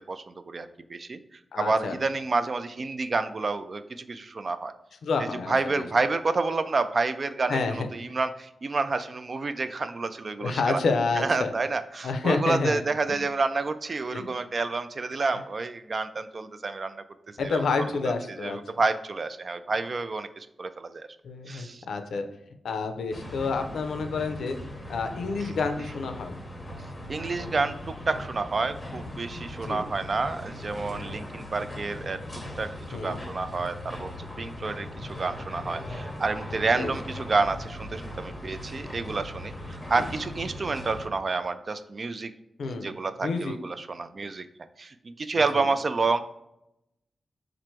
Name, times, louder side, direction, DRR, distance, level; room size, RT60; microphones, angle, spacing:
voice 1, 0.1-1.2 1.6-4.7 5.5-10.8 11.2-17.0 17.4-17.6 18.4-21.1 21.5-21.8 25.4-25.5 27.1-32.2 32.6-42.3 42.6-44.5 44.8-46.2, right 3 dB, 45° right, 11 dB, 0.3 m, -29 dB
voice 2, 1.5-1.9 5.0-5.9 7.5-7.9 10.4-11.5 12.0-12.8 13.1-13.2 14.1-14.3 17.4-18.6 21.2-22.3 22.6-24.6 24.9-26.4 29.6-29.8 32.9-33.2 36.7-36.9 39.9-40.1 42.6-42.9 43.2-43.6 45.3-45.6, left 4 dB, 90° left, 7 dB, 0.5 m, -29 dB
sound 1, 23.1-41.1, left 1 dB, 20° left, 0.7 m, -39 dB
4.4 x 2.5 x 4.4 m, 0.84 s
wide cardioid pair, 110°, 0 cm